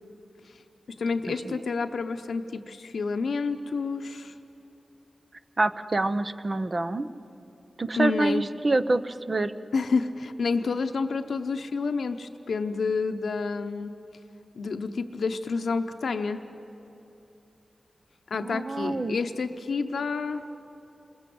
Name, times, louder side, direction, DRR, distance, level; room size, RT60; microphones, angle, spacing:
voice 1, 1.0-4.3 8.0-8.4 9.7-13.9 14.6-16.4 18.3-20.5, left 4 dB, 85° left, 7 dB, 0.8 m, -29 dB
voice 2, 5.6-7.1 7.8-9.5 18.3-19.2, right 2 dB, 45° right, 10 dB, 0.9 m, -26 dB
28.0 x 21.0 x 7.8 m, 2.8 s
cardioid pair, 60°, 0 cm